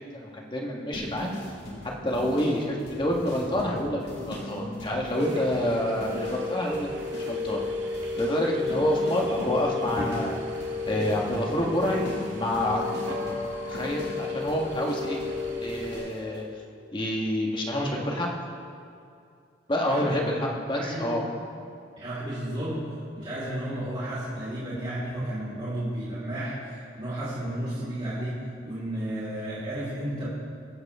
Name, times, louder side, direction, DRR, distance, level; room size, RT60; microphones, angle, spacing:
voice 1, 0.0-1.3 2.0-6.9 7.1-7.6 8.1-10.4 10.9-12.1 12.4-13.0 13.2-13.3 13.7-15.2 15.6-16.5 16.9-18.3 19.7-21.2, left 1 dB, 25° left, -1 dB, 1.7 m, -28 dB
sound 1, 0.9-6.5 6.7-7.7 7.9-15.4 15.7-16.1, left 1 dB, 60° left, 2.9 m, -40 dB
sound 2, 5.1-16.0, left 3 dB, 85° right, 2.3 m, -33 dB
voice 2, 19.9-20.4 20.7-21.2 22.0-22.8 23.1-30.3, right 1 dB, 30° right, -11 dB, 3.2 m, -33 dB
22.5 x 8.0 x 3.7 m, 2.5 s
head